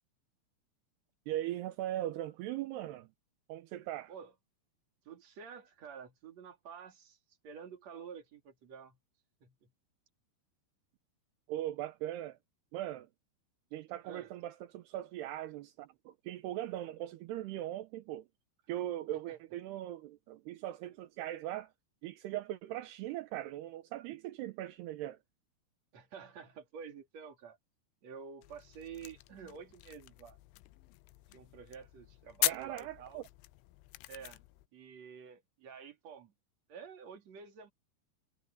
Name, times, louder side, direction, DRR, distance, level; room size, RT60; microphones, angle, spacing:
voice 1, 1.3-3.1 3.5-4.1 11.5-12.4 12.7-13.1 13.7-18.3 18.7-21.7 22.0-25.2 32.4-33.2, right 13 dB, 80° right, 2.4 m, -39 dB
voice 2, 5.0-7.2 7.4-9.0 9.4-9.7 14.0-14.3 19.3-19.4 25.9-27.6 28.0-30.4 31.3-33.2 34.1-34.4 34.7-36.3 36.7-37.7, right 6 dB, 40° right, 3.2 m, -49 dB
sound 1, 28.4-34.7, left 20 dB, 80° left, 3.0 m, -41 dB
omnidirectional pair, 5.9 m